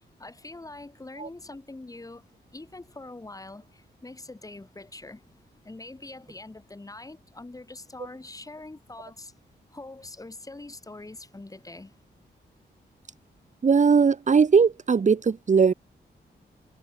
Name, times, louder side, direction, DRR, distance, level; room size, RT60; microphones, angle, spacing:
voice 1, 0.2-2.2 2.5-5.2 5.6-9.3 9.7-12.0, left 2 dB, 20° left, 7.3 m, -43 dB
voice 2, 13.6-15.7, right 5 dB, 40° right, 1.3 m, -19 dB
wide cardioid pair, 135°, 18 cm